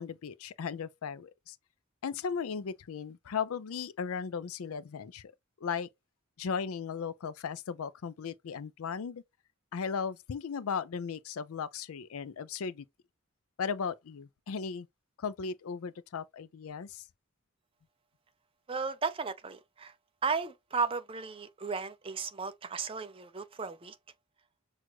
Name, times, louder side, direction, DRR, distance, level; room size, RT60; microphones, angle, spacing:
voice 1, 0.0-1.6 2.0-5.2 5.6-5.9 6.4-9.2 9.7-12.8 13.6-14.9 15.2-17.0, left 6 dB, 85° left, 0.4 m, -36 dB
voice 2, 18.7-19.9 20.2-24.0, right 5 dB, 25° right, 0.4 m, -35 dB
6.1 x 2.4 x 2.9 m
head